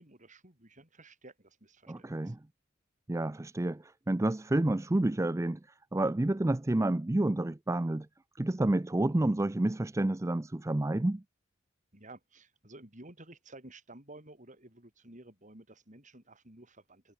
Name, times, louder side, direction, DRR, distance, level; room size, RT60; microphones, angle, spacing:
voice 1, 0.0-2.3 11.9-17.1, right 2 dB, 40° right, 8.0 m, -53 dB
voice 2, 1.9-2.4 3.1-5.6 5.9-8.1 8.4-11.2, right 1 dB, 15° right, 0.5 m, -29 dB
head